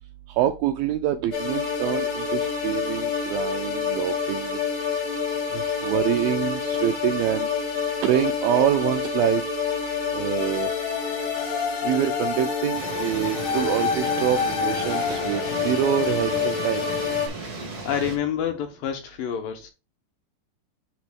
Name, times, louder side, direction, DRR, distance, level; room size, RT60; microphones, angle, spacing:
voice 1, 0.4-4.6 5.5-7.5 8.0-9.4 10.1-10.7 11.8-16.9, right 11 dB, 85° right, 2.0 m, -25 dB
sound 1, 1.3-17.3, left 6 dB, 60° left, 1.3 m, -27 dB
sound 2, 12.7-18.2, right 3 dB, 70° right, 0.9 m, -35 dB
voice 2, 17.9-19.7, left 8 dB, 75° left, 2.2 m, -28 dB
9.5 x 3.4 x 3.6 m
omnidirectional pair, 4.6 m